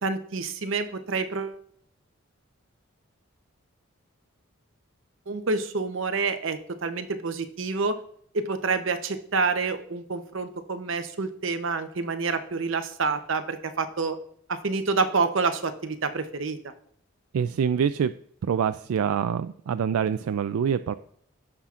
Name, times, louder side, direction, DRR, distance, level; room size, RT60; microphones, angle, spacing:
voice 1, 0.0-1.6 5.3-8.0 8.3-14.2 14.5-16.6, right 4 dB, 65° right, 8 dB, 0.7 m, -28 dB
voice 2, 17.3-18.1 18.4-20.9, right 7 dB, 85° right, 11 dB, 0.3 m, -25 dB
16.0 x 5.8 x 2.5 m, 0.64 s
head